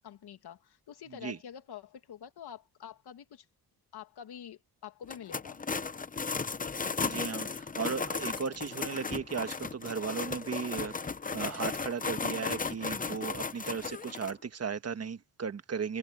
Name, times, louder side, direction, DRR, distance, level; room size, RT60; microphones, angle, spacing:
voice 1, 0.0-3.5 3.9-5.6, left 9 dB, 80° left, 2.4 m, -47 dB
sound 1, 5.0-14.3, left 5 dB, 20° left, 0.7 m, -35 dB
voice 2, 7.0-10.9 11.3-16.0, right 6 dB, 40° right, 1.4 m, -36 dB
cardioid pair, 120°, 39 cm